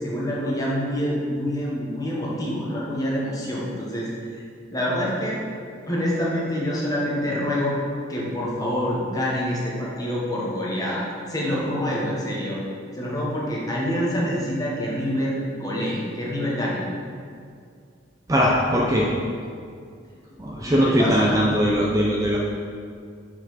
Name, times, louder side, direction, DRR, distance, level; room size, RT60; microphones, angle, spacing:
voice 1, 0.0-4.1 4.7-5.4 5.9-7.8 8.1-11.0 11.3-12.6 13.0-16.8 20.6-21.4, equal, 20° left, -5 dB, 1.1 m, -26 dB
voice 2, 18.3-19.1 20.4-22.4, equal, 15° right, -3 dB, 0.5 m, -20 dB
6.7 x 4.7 x 4.0 m, 2.3 s
head